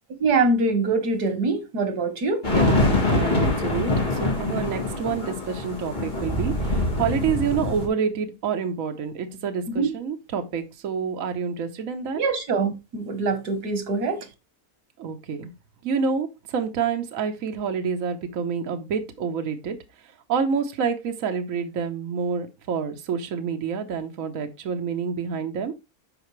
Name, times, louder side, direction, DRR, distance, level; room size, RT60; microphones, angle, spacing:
voice 1, 0.2-2.4 9.7-9.9 12.1-14.2, right 3 dB, 90° right, 1.8 m, -24 dB
sound 1, 2.4-7.9, left 2 dB, 30° left, 1.9 m, -24 dB
voice 2, 2.5-12.2 15.0-15.5 15.8-19.8 20.3-25.7, right 6 dB, 60° right, 1.3 m, -28 dB
11.5 x 4.4 x 3.2 m
omnidirectional pair, 1.6 m